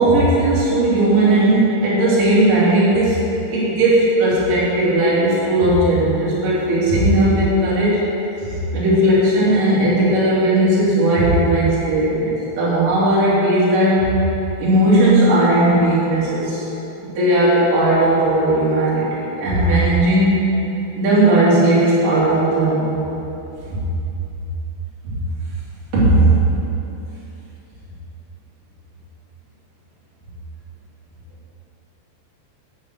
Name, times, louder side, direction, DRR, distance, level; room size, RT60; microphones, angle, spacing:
voice 1, 0.0-3.2 3.5-8.0 8.7-14.1 14.6-16.6 17.2-20.4 21.0-22.9 23.7-23.8 25.0-25.1 25.9-26.4, right 1 dB, 55° right, -9 dB, 4.4 m, -16 dB
11.0 x 6.3 x 8.0 m, 3.0 s
omnidirectional pair, 5.0 m